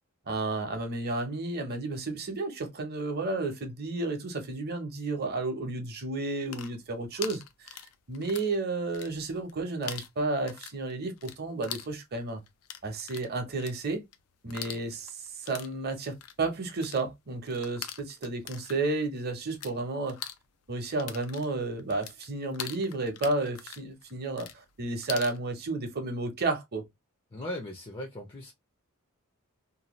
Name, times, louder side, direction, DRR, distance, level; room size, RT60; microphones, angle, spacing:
voice 1, 0.3-7.8 8.1-12.4 12.8-14.0 14.4-20.2 20.7-26.8, right 3 dB, 45° right, 0.8 m, -32 dB
sound 1, 6.3-8.6 8.8-9.5 9.8-19.7 20.0-25.4, left 10 dB, 75° left, 0.5 m, -43 dB
voice 2, 27.3-28.5, left 1 dB, 25° left, 0.5 m, -38 dB
2.7 x 2.2 x 3.0 m
head